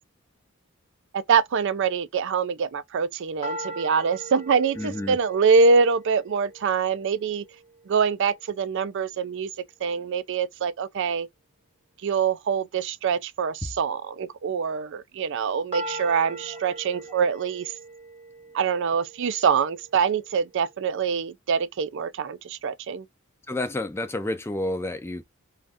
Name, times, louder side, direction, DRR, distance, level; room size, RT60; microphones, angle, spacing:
voice 1, 1.3-7.4 7.9-9.5 9.8-11.3 12.0-17.7 18.5-23.1, right 5 dB, 60° right, 0.4 m, -24 dB
sound 1, 3.4-7.4 15.7-19.8, right 1 dB, 35° right, 1.0 m, -40 dB
voice 2, 4.8-5.2 23.5-25.2, left 1 dB, 10° left, 0.4 m, -30 dB
2.5 x 2.3 x 3.3 m
head